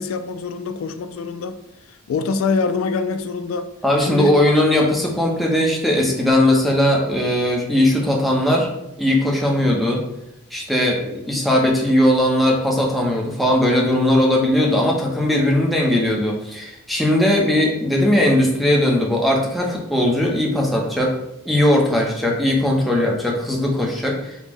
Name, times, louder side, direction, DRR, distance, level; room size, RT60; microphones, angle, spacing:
voice 1, 0.0-1.6 2.1-3.7 4.0-4.3, left 4 dB, 75° left, 10 dB, 0.3 m, -24 dB
voice 2, 3.8-8.7 9.0-10.0 10.5-21.1 21.5-24.5, left 1 dB, ahead, -2 dB, 0.6 m, -19 dB
5.0 x 2.1 x 3.4 m, 0.84 s
head